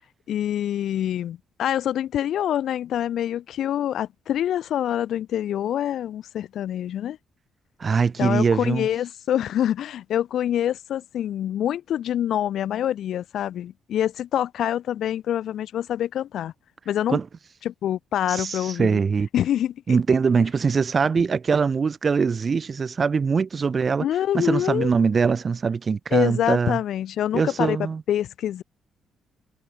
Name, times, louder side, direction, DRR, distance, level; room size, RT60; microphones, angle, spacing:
voice 1, 0.3-7.2 8.2-16.5 16.9-17.2 17.6-19.0 19.3-20.0 24.0-24.9 26.1-27.8 28.1-28.6, left 11 dB, 70° left, 7.1 m, -26 dB
voice 2, 7.8-8.9 17.1-17.2 18.3-19.3 19.9-24.1 24.3-26.8 27.3-28.0, right 5 dB, 40° right, 1.2 m, -22 dB
cardioid pair, 90°, 0 cm